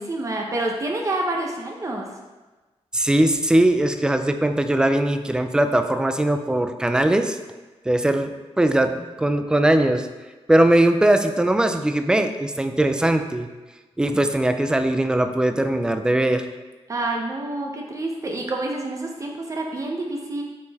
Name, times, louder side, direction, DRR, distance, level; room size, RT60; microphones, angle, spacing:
voice 1, 0.0-2.1 16.9-20.4, right 2 dB, 30° right, 0 dB, 0.7 m, -28 dB
voice 2, 2.9-7.4 7.9-10.1 10.5-13.5 14.0-16.5, right 1 dB, 5° right, 7 dB, 0.4 m, -20 dB
8.3 x 5.3 x 3.5 m, 1.2 s
wide cardioid pair, 165°, 11 cm